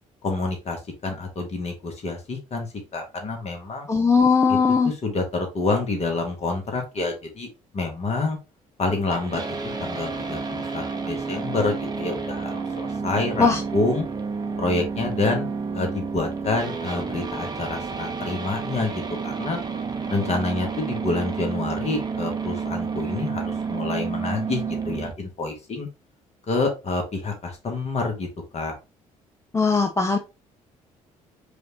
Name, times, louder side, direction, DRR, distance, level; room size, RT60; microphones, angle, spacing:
voice 1, 0.2-3.9 4.5-4.6 4.8-7.5 7.7-8.4 8.8-14.0 14.6-15.5 15.7-19.6 20.1-25.9 26.5-28.3 28.5-28.7, left 3 dB, 35° left, 3 dB, 1.4 m, -28 dB
voice 2, 3.9-4.9 13.4-13.6 29.5-30.2, left 5 dB, 15° left, 4 dB, 0.5 m, -19 dB
sound 1, 9.1-25.1, right 5 dB, 20° right, 0.8 m, -30 dB
4.9 x 2.5 x 2.9 m, 0.27 s
figure-of-eight pair, 50°, 18 cm